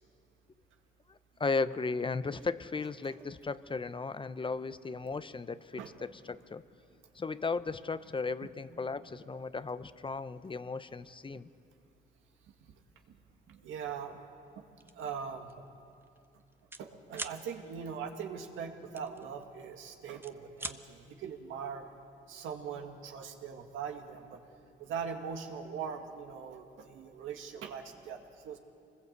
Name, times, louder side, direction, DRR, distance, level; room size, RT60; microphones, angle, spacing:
voice 1, 1.1-6.6 7.1-11.5, left 4 dB, 25° left, 13 dB, 0.7 m, -36 dB
voice 2, 5.7-6.1 8.4-8.5 9.3-9.4 12.4-12.7 13.5-14.2 14.6-14.7 15.0-15.5 16.8-21.9 22.3-24.4 24.8-28.6, right 7 dB, 85° right, 4 dB, 2.0 m, -41 dB
sound 1, 14.8-15.0 15.5-15.7 15.9-16.8 17.1-17.4 19.0-19.7 20.1-20.8, right 2 dB, 10° right, 1.0 m, -42 dB
25.5 x 20.5 x 8.1 m, 2.5 s
cardioid pair, 90°, 20 cm